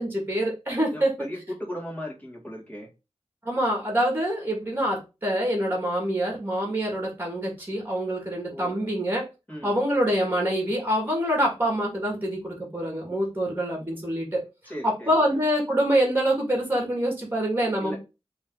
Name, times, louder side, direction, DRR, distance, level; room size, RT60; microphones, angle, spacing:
voice 1, 0.0-1.2 3.5-9.2 9.6-14.4 14.8-18.0, equal, 20° right, 0 dB, 1.7 m, -25 dB
voice 2, 0.9-2.9 8.5-8.9 9.5-9.7 14.7-15.1 17.8-18.0, equal, 15° left, -2 dB, 1.7 m, -37 dB
3.1 x 3.0 x 3.8 m, 0.28 s
wide cardioid pair, 55°, 11 cm